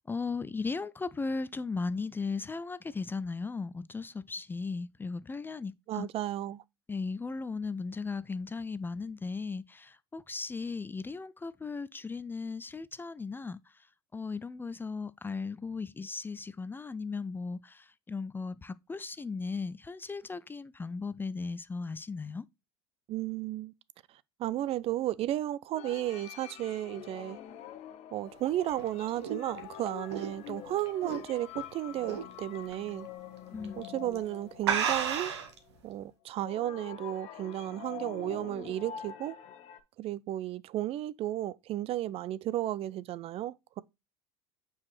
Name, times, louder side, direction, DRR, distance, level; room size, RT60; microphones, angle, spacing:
voice 1, 0.1-6.1 6.9-13.6 14.1-22.4 33.5-33.9, left 4 dB, 15° left, 0.4 m, -37 dB
voice 2, 5.9-6.6 23.1-23.7 24.4-27.4 28.1-33.1 33.8-35.3 35.8-39.4 40.0-43.8, right 13 dB, 45° right, 0.5 m, -34 dB
sound 1, 25.7-35.8 36.4-39.8, left 10 dB, 50° left, 1.0 m, -46 dB
sound 2, 28.5-31.6 32.0-32.3 32.7-32.8 33.6-33.9 34.2-34.3 34.6-35.6, right 7 dB, 75° right, 1.4 m, -32 dB
8.4 x 4.8 x 3.2 m
hypercardioid pair, 70°, 14 cm